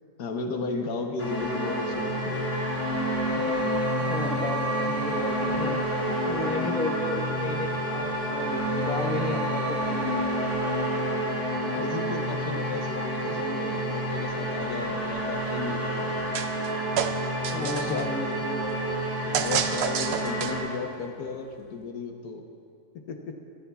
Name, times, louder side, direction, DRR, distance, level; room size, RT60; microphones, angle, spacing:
voice 1, 0.2-2.5 3.4-4.0 11.6-16.2 17.6-18.2 19.3-22.4 22.9-23.4, left 4 dB, 85° left, 4 dB, 1.5 m, -35 dB
sound 1, 1.2-20.6, equal, 65° left, 3.4 m, -29 dB
voice 2, 4.0-5.8 6.3-10.2 13.2-13.7 17.5-19.1, left 2 dB, 5° left, 0 dB, 0.9 m, -34 dB
sound 2, 16.3-16.7 17.0-18.0 19.3-20.7, right 8 dB, 70° right, 0.6 m, -29 dB
21.5 x 14.0 x 2.3 m, 2.5 s
omnidirectional pair, 1.7 m